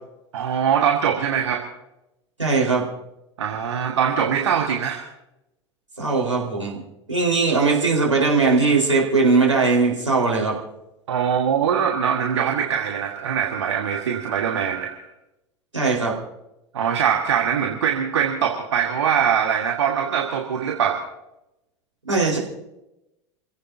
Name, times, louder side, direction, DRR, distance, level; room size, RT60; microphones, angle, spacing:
voice 1, 0.3-1.6 3.4-5.1 11.1-15.0 16.7-21.0, right 8 dB, 70° right, 2 dB, 1.7 m, -22 dB
voice 2, 2.4-2.9 6.0-6.8 7.1-10.6 15.7-16.1 22.0-22.4, right 4 dB, 85° right, -2 dB, 4.5 m, -19 dB
29.0 x 16.0 x 2.8 m, 0.91 s
figure-of-eight pair, 80°, 15 cm